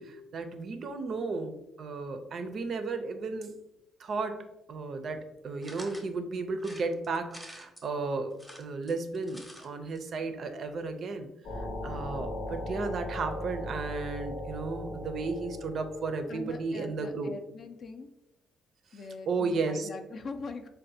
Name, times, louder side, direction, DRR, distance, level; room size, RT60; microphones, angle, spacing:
voice 1, 0.0-3.5 4.0-11.3 11.6-17.3 19.3-19.9, right 4 dB, 55° right, 7 dB, 0.4 m, -34 dB
cogiendo monedas, 5.6-6.1 6.6-7.9 8.3-9.7 10.0-10.1 10.3-10.4, equal, 5° left, 0.6 m, -48 dB
sound 1, 11.4-16.9, left 1 dB, 80° left, 0.7 m, -38 dB
voice 2, 16.3-18.1 18.9-20.7, left 4 dB, 55° left, 6 dB, 0.3 m, -42 dB
4.0 x 2.1 x 2.6 m, 0.90 s
cardioid pair, 90°, 0 cm